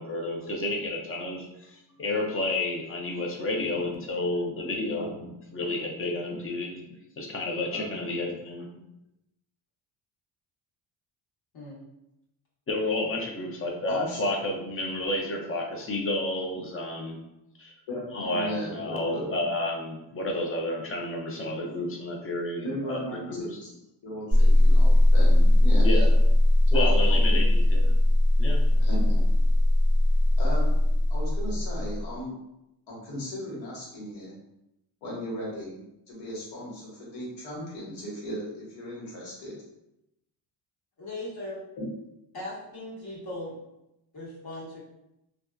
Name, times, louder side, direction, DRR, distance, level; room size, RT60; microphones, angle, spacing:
voice 1, 0.0-5.1 5.5-6.8 7.2-8.7 12.7-17.2 17.6-17.7 18.1-23.0 23.3-23.4 25.8-26.1 26.7-27.9 28.4-28.6, left 2 dB, 30° left, 1 dB, 0.5 m, -31 dB
voice 2, 3.7-4.2 4.5-5.8 7.7-8.1 13.9-14.2 17.9-19.4 22.6-23.7 24.0-26.0 26.7-27.4 28.8-29.2 30.4-30.7 31.1-32.3 32.9-34.3 35.0-35.8 36.1-39.6 41.8-41.9, equal, 80° left, -4 dB, 1.2 m, -36 dB
sound 1, 24.3-32.1, left 1 dB, 10° right, 0.7 m, -20 dB
voice 3, 41.0-41.6 42.3-43.5 44.1-44.8, left 1 dB, 55° left, -6 dB, 1.2 m, -38 dB
2.6 x 2.2 x 2.2 m, 0.86 s
cardioid pair, 95°, 45 cm